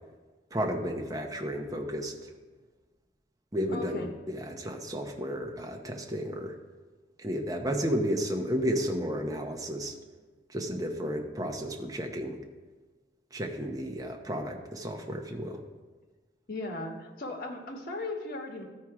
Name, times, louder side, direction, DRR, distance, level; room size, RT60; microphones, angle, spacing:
voice 1, 0.5-2.1 3.5-6.6 7.2-9.9 10.5-12.4 13.3-15.6, equal, 20° right, 2 dB, 0.9 m, -32 dB
voice 2, 3.7-4.1 16.5-18.6, left 2 dB, 55° left, 2 dB, 1.3 m, -37 dB
13.0 x 4.6 x 4.8 m, 1.3 s
head